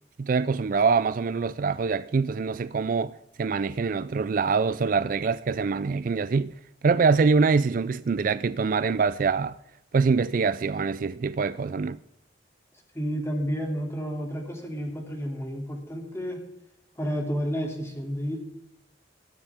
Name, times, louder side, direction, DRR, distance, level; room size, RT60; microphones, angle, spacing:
voice 1, 0.2-3.1 3.4-6.5 6.8-9.6 9.9-12.0, right 5 dB, 45° right, 0.4 m, -24 dB
voice 2, 12.9-16.4 17.0-18.4, equal, 15° left, 2.8 m, -31 dB
20.5 x 9.8 x 3.6 m
head